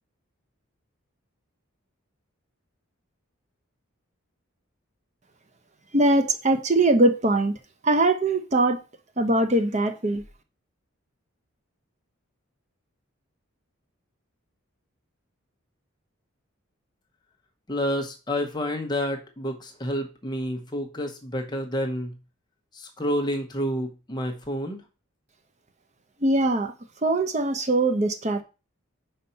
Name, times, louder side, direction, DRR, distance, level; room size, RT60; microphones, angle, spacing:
voice 1, 5.9-7.6 7.8-8.8 9.2-10.2 26.2-26.7 27.0-28.4, right 2 dB, 35° right, 0.8 m, -21 dB
voice 2, 17.7-22.1 22.7-24.8, equal, 20° left, 0.9 m, -29 dB
5.5 x 4.2 x 5.5 m
head